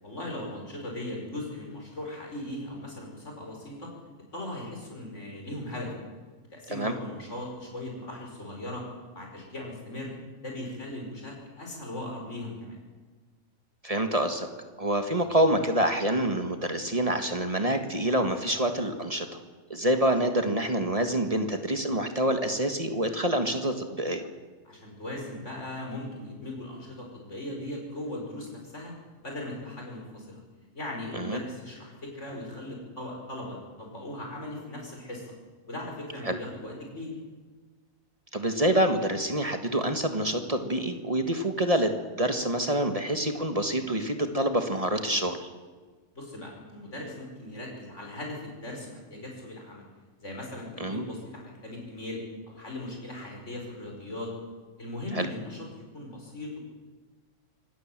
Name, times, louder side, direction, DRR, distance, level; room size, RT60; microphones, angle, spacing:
voice 1, 0.0-3.9 4.3-5.9 6.5-8.8 9.1-10.1 10.4-12.8 24.6-28.9 29.2-30.4 30.7-35.3 35.7-37.1 46.1-49.8 50.2-54.3 54.8-55.7 55.9-56.6, left 1 dB, 60° left, 0 dB, 5.9 m, -38 dB
voice 2, 13.8-14.5 14.8-19.3 19.7-24.3 31.1-31.4 36.2-36.4 38.3-45.5 50.8-51.0 55.1-55.3, right 1 dB, 25° right, 6 dB, 1.7 m, -27 dB
25.5 x 17.5 x 7.6 m, 1.4 s
omnidirectional pair, 1.4 m